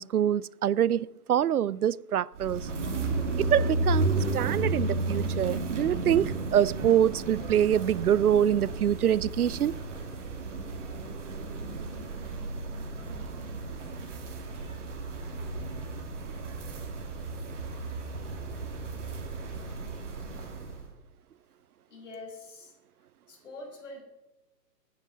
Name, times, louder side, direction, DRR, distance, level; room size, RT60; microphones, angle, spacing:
voice 1, 0.0-2.7 3.4-9.7, right 10 dB, 65° right, 0.5 m, -25 dB
sound 1, 2.3-20.9, right 2 dB, 45° right, 2.7 m, -33 dB
voice 2, 21.9-22.7 23.3-24.0, left 2 dB, 45° left, 5.9 m, -44 dB
19.0 x 9.7 x 6.2 m
hypercardioid pair, 180°, 49 cm